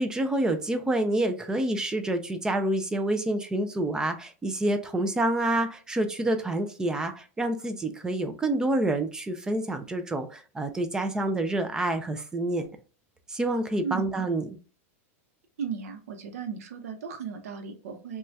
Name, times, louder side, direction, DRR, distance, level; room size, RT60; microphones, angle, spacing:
voice 1, 0.0-12.7 13.3-14.5, right 1 dB, 10° right, 7 dB, 0.3 m, -28 dB
voice 2, 15.6-18.2, right 7 dB, 90° right, 5 dB, 0.7 m, -35 dB
2.7 x 2.3 x 3.1 m, 0.36 s
supercardioid pair, 150°, 8 cm